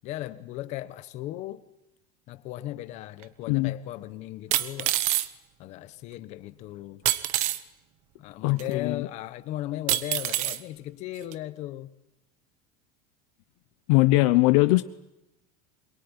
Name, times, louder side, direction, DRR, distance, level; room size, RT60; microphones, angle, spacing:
voice 1, 0.0-1.6 2.3-4.9 5.6-7.1 8.2-11.9, left 14 dB, 35° left, 13 dB, 1.1 m, -37 dB
sound 1, 3.2-3.3 4.5-5.3 7.1-7.6 8.6-8.7 9.9-10.6 11.3-11.4, right 15 dB, 40° right, 1.1 m, -26 dB
voice 2, 8.4-9.0 13.9-14.8, left 20 dB, 55° left, 12 dB, 0.9 m, -21 dB
23.0 x 22.0 x 9.9 m, 0.92 s
supercardioid pair, 175°, 19 cm